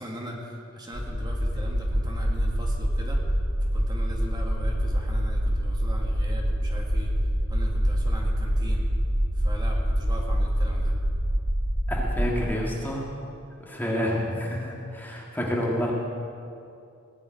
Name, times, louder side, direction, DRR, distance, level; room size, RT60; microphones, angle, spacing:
voice 1, 0.0-3.2 3.6-7.1 7.5-8.9 9.3-10.9, equal, 20° right, -1 dB, 2.2 m, -39 dB
sound 1, 0.9-12.4, equal, 85° right, 2.2 m, -26 dB
voice 2, 11.9-13.0 13.6-15.9, equal, 10° left, -3 dB, 2.0 m, -29 dB
19.0 x 7.6 x 9.3 m, 2.5 s
head